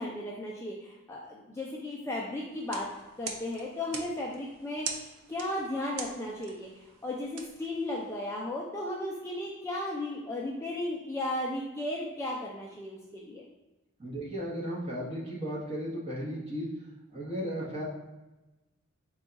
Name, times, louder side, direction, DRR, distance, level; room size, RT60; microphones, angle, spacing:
voice 1, 0.0-2.9 3.2-13.4, left 1 dB, 10° left, -3 dB, 0.3 m, -35 dB
sound 1, 2.5-8.4, right 5 dB, 75° right, 0.5 m, -43 dB
voice 2, 14.0-16.7 17.1-17.8, equal, 25° right, -6 dB, 1.0 m, -35 dB
4.4 x 2.3 x 3.9 m, 1.1 s
head